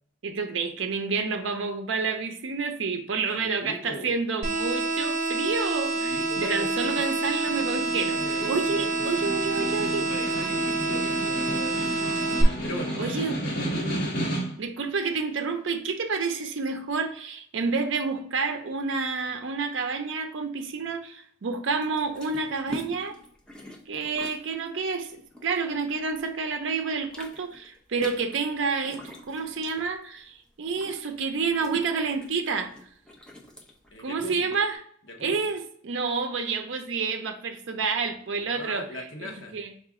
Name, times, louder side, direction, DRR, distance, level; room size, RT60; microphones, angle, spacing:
voice 1, 0.2-8.2 8.5-10.0 13.0-13.4 14.6-23.1 23.9-25.1 25.4-32.7 34.0-34.7 35.2-38.8 39.5-39.7, right 4 dB, 75° right, 0.5 m, -29 dB
voice 2, 3.4-4.2 5.9-7.1 8.2-9.3 9.6-12.1 12.6-13.0 13.7-14.0 33.9-34.5 35.1-35.4 38.5-39.6, equal, 85° left, 0.8 m, -39 dB
sound 1, 4.4-12.4, right 2 dB, 50° right, 0.8 m, -28 dB
Snare drum, 7.2-14.7, right 1 dB, 50° left, 1.2 m, -33 dB
sound 2, 21.8-26.3 26.7-34.7, left 1 dB, 5° left, 0.5 m, -45 dB
4.8 x 2.4 x 3.5 m
head